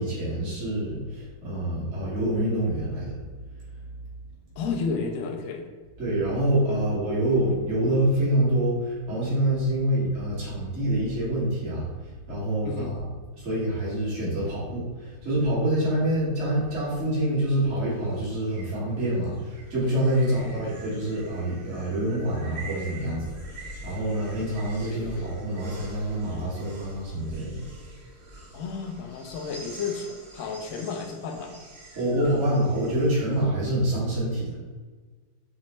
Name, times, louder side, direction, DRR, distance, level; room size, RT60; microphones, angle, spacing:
voice 1, 0.0-3.1 6.0-11.8 12.3-13.1 13.4-27.6 31.9-34.6, right 1 dB, 40° right, -8 dB, 1.9 m, -26 dB
voice 2, 4.6-5.6 12.6-13.0 20.2-20.7 24.9-25.3 28.5-30.1 30.3-31.5, left 5 dB, 75° left, 3 dB, 0.7 m, -32 dB
sound 1, 16.5-33.4, right 2 dB, 75° right, 1.8 m, -45 dB
6.5 x 2.5 x 3.1 m, 1.4 s
omnidirectional pair, 2.1 m